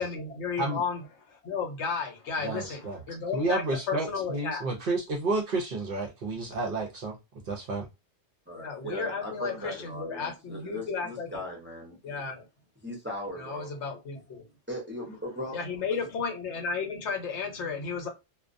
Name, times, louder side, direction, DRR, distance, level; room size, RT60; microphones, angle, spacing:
voice 1, 0.0-4.6 8.5-11.4 12.0-12.5 13.4-14.5 15.5-18.1, left 5 dB, 70° left, 1.0 m, -33 dB
voice 2, 2.4-3.0 3.3-7.2 7.5-7.9, right 2 dB, 55° right, 0.6 m, -30 dB
voice 3, 8.5-12.2 12.8-13.7 14.7-15.6, equal, 15° right, 0.5 m, -38 dB
2.3 x 2.2 x 2.5 m
omnidirectional pair, 1.3 m